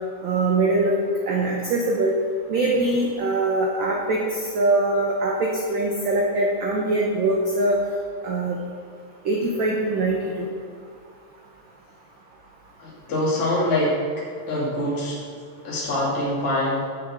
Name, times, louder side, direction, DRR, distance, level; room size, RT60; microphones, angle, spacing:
voice 1, 0.2-1.0 1.3-2.1 2.5-7.8 8.2-8.6 9.2-10.5, right 2 dB, 55° right, -2 dB, 1.6 m, -22 dB
voice 2, 12.8-14.0 14.5-15.2 15.6-16.8, left 1 dB, 70° left, -7 dB, 4.0 m, -24 dB
17.5 x 7.4 x 3.7 m, 2.2 s
omnidirectional pair, 3.4 m